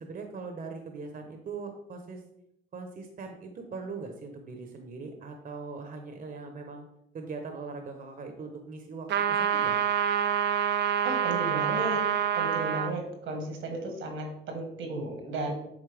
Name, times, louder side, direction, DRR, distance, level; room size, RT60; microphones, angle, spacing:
voice 1, 0.0-2.2 2.7-6.8 7.1-9.8, right 4 dB, 45° right, 4 dB, 0.9 m, -40 dB
sound 1, 9.1-12.9, right 8 dB, 60° right, 0.5 m, -27 dB
voice 2, 11.0-12.0 12.3-15.5, right 2 dB, 80° right, 3 dB, 1.6 m, -34 dB
7.3 x 4.0 x 3.4 m, 0.80 s
cardioid pair, 90°, 20 cm